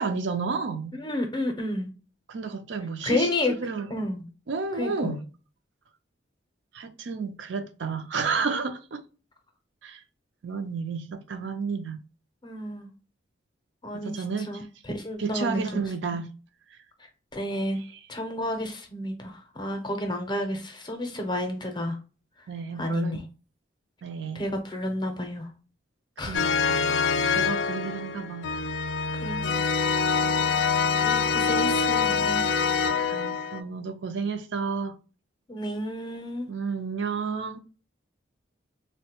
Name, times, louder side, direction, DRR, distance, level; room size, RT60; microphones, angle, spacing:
voice 1, 0.0-1.0 2.3-4.0 4.5-5.2 6.7-9.0 9.8-10.0 10.4-12.0 13.9-14.6 15.2-16.3 21.1-21.2 22.5-23.2 24.0-24.4 26.2-26.8 27.3-28.5 30.6-30.8 33.1-35.0 36.5-37.6, right 5 dB, 65° right, 0.4 m, -31 dB
voice 2, 1.0-1.9 3.0-3.5 3.9-4.3 4.7-5.1 12.4-12.9 13.8-15.9 17.3-17.8 18.1-22.0 22.8-23.2 24.3-25.5 26.2-26.5 29.1-29.6 30.7-32.5 35.5-36.5, left 1 dB, 20° left, 0.6 m, -31 dB
sound 1, 26.3-33.6, left 5 dB, 70° left, 0.4 m, -25 dB
3.6 x 2.1 x 2.8 m
head